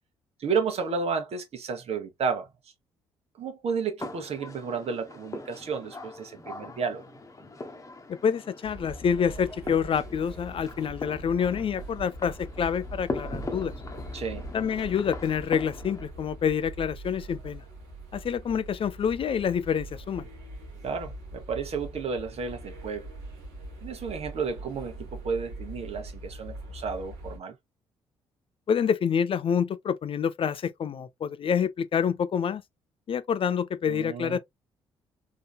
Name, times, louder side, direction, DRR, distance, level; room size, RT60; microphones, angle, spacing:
voice 1, 0.4-2.5 3.4-7.0 14.1-14.5 20.8-23.1 23.8-27.6 33.9-34.4, right 5 dB, 55° right, 1.0 m, -32 dB
sound 1, 4.0-16.1, left 2 dB, 25° left, 1.0 m, -41 dB
voice 2, 8.1-13.7 14.5-17.6 18.1-20.2 28.7-32.6 33.1-34.4, left 7 dB, 45° left, 0.5 m, -27 dB
sound 2, 8.6-27.4, right 1 dB, 85° right, 1.2 m, -42 dB
3.8 x 2.7 x 2.2 m
hypercardioid pair, 50°, 13 cm